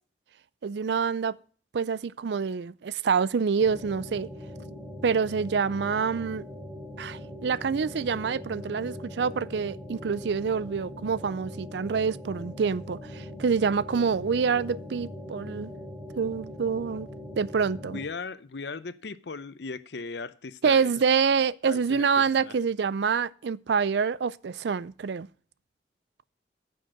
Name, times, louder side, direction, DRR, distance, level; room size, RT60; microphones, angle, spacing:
voice 1, 0.6-1.4 1.7-4.3 5.0-6.4 7.0-15.7 16.1-17.1 17.4-18.0 20.6-25.3, right 6 dB, 70° right, 0.4 m, -26 dB
sound 1, 3.6-18.1, left 1 dB, 15° right, 3.5 m, -41 dB
voice 2, 17.9-20.9 21.6-22.5, left 4 dB, 70° left, 0.7 m, -38 dB
9.7 x 6.5 x 7.6 m
head